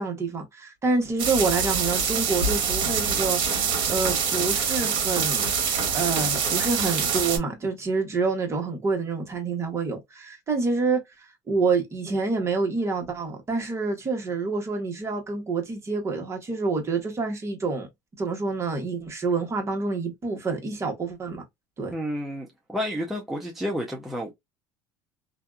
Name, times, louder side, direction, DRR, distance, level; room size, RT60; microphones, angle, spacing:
voice 1, 0.0-5.5 5.9-11.0 11.5-17.9 18.2-21.4 21.8-21.9, right 4 dB, 25° right, 1.1 m, -27 dB
sound 1, 1.2-7.4, right 6 dB, 60° right, 1.1 m, -25 dB
voice 2, 21.9-24.3, equal, ahead, 0.6 m, -30 dB
2.6 x 2.3 x 2.2 m
supercardioid pair, 100°, 10 cm